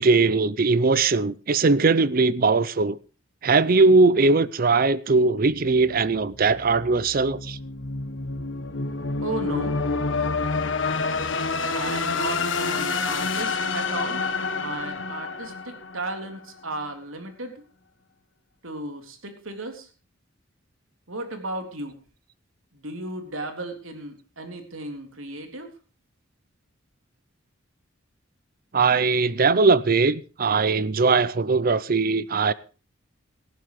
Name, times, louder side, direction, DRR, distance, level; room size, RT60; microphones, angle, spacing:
voice 1, 0.0-3.0 3.4-7.6 28.7-32.5, right 3 dB, 45° right, 0.6 m, -20 dB
sound 1, 5.5-16.5, left 4 dB, 65° left, 1.6 m, -28 dB
voice 2, 9.2-9.8 11.7-14.2 14.5-17.6 18.6-19.9 21.1-22.0 22.7-25.7, right 2 dB, 85° right, 3.6 m, -34 dB
18.5 x 14.5 x 3.1 m
head